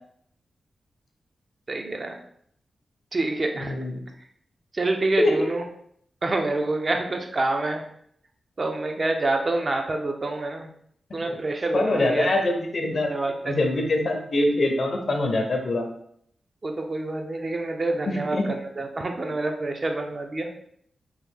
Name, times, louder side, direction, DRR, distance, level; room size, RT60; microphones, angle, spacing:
voice 1, 1.7-2.2 3.1-3.7 4.7-5.6 6.2-7.8 8.6-10.7 11.1-12.3 12.9-13.5 16.6-20.5, right 2 dB, 40° right, 3 dB, 0.5 m, -27 dB
voice 2, 3.6-4.0 5.2-5.3 11.1-11.4 11.7-13.1 13.4-15.9 18.1-18.5, left 2 dB, 55° left, 3 dB, 0.6 m, -24 dB
3.1 x 2.1 x 3.5 m, 0.66 s
cardioid pair, 80°, 0 cm